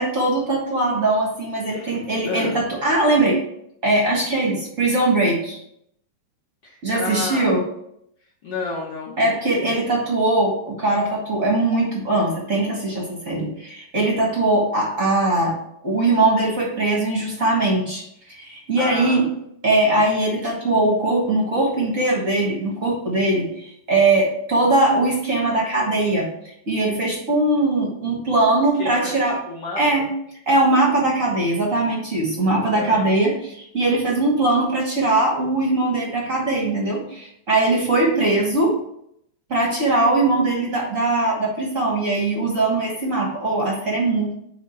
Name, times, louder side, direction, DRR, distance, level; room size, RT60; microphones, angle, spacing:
voice 1, 0.0-3.4 3.8-5.6 6.8-7.6 9.2-15.5 15.8-19.3 19.6-29.4 29.8-30.1 30.5-38.7 39.5-44.3, right 2 dB, 45° right, -3 dB, 1.0 m, -21 dB
voice 2, 1.7-2.6 6.6-7.5 8.4-9.1 18.8-19.3 28.7-30.1 32.7-33.1, left 3 dB, 80° left, -4 dB, 0.9 m, -31 dB
8.8 x 2.9 x 5.6 m, 0.73 s
omnidirectional pair, 3.8 m